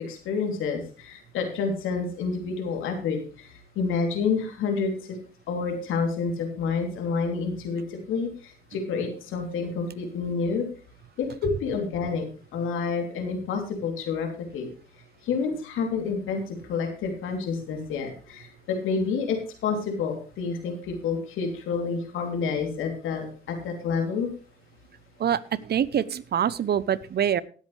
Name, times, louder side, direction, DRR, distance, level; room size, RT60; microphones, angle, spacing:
voice 1, 0.0-3.5 3.7-5.2 5.5-10.7 11.2-12.2 12.5-14.3 14.5-14.7 15.2-24.3, left 5 dB, 70° left, 3 dB, 3.3 m, -29 dB
voice 2, 25.2-27.4, right 9 dB, 50° right, 19 dB, 0.8 m, -25 dB
18.5 x 8.3 x 3.3 m, 0.39 s
hypercardioid pair, 55°, 21 cm